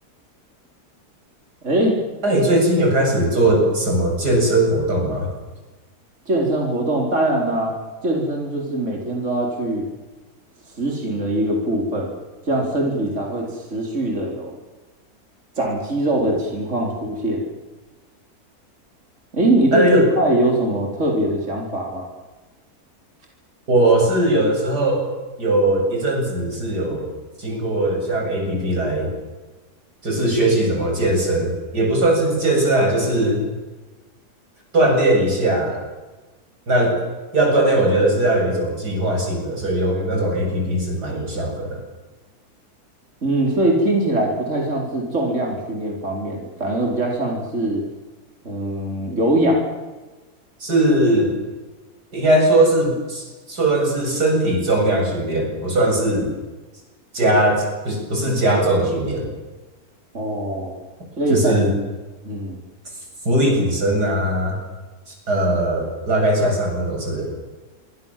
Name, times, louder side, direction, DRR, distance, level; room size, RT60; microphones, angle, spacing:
voice 1, 1.6-2.0 6.3-7.8 8.0-9.9 10.8-12.1 12.5-14.5 15.6-17.4 19.3-22.0 43.2-47.9 48.4-49.6 60.1-60.7 61.2-61.5 62.2-62.6, right 1 dB, 50° right, 0 dB, 5.0 m, -22 dB
voice 2, 2.2-5.3 19.7-20.1 23.7-25.1 25.4-27.1 27.4-29.1 30.0-33.4 34.7-35.8 36.7-37.0 37.3-41.8 50.6-51.3 52.1-56.3 57.1-59.3 61.3-61.7 63.3-64.6 65.1-67.3, right 1 dB, 90° right, 1 dB, 8.8 m, -19 dB
27.5 x 25.0 x 7.6 m, 1.2 s
omnidirectional pair, 1.7 m